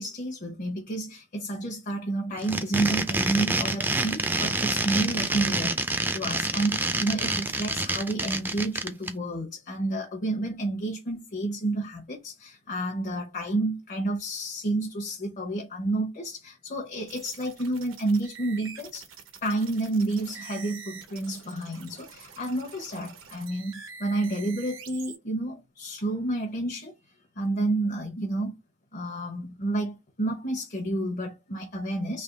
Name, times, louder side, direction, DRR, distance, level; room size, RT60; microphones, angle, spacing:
voice 1, 0.0-19.0 19.4-26.9 27.4-28.5 28.9-32.2, right 2 dB, 45° left, 1.0 m, -30 dB
sound 1, 2.4-9.1, right 2 dB, 10° right, 0.4 m, -27 dB
sound 2, 17.1-25.2, right 6 dB, 85° right, 0.9 m, -46 dB
3.5 x 2.8 x 3.9 m
head